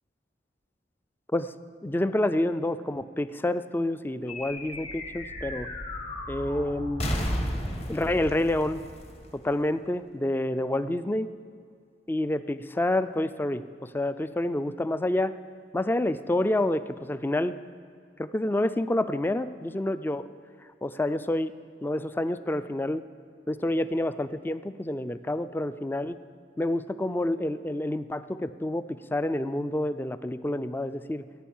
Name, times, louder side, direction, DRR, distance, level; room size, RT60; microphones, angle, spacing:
voice 1, 1.8-5.7 6.3-7.1 7.9-8.8 9.4-11.3 12.1-15.3 15.7-17.6 18.2-20.3 20.8-21.5 21.8-23.0 23.5-26.2 26.6-31.2, left 1 dB, 10° left, 13 dB, 0.3 m, -28 dB
sound 1, 4.3-10.0, equal, 35° left, 1.6 m, -34 dB
14.5 x 9.2 x 7.2 m, 2.3 s
head